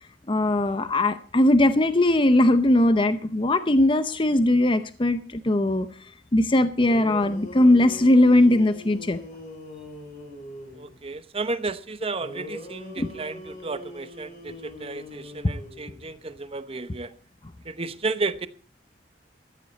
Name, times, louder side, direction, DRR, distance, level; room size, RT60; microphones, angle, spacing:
voice 1, 0.3-9.2 13.0-13.1, left 1 dB, 30° left, 0.7 m, -20 dB
sound 1, 6.5-6.6 6.8-10.9 12.2-16.2, left 1 dB, 45° left, 4.9 m, -41 dB
voice 2, 10.7-17.1 17.6-18.5, right 3 dB, 35° right, 0.9 m, -32 dB
14.5 x 14.0 x 4.1 m
head